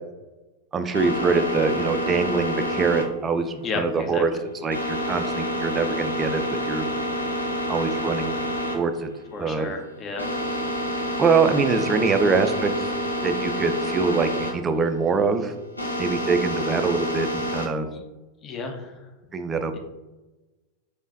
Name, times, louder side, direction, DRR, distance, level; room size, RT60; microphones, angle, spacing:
voice 1, 0.7-4.3 4.6-6.9 7.7-8.4 8.7-9.1 9.4-9.7 11.2-12.9 13.2-15.5 16.0-17.9 19.3-19.8, right 4 dB, 20° right, 8 dB, 0.4 m, -24 dB
sound 1, 0.9-17.7, equal, 80° left, 0.7 m, -28 dB
voice 2, 3.6-4.2 9.3-10.2 17.9-18.0 18.4-19.0 19.7-19.8, left 4 dB, 25° left, 3 dB, 0.8 m, -32 dB
5.4 x 3.2 x 2.5 m, 1.1 s
figure-of-eight pair, 90°, 0 cm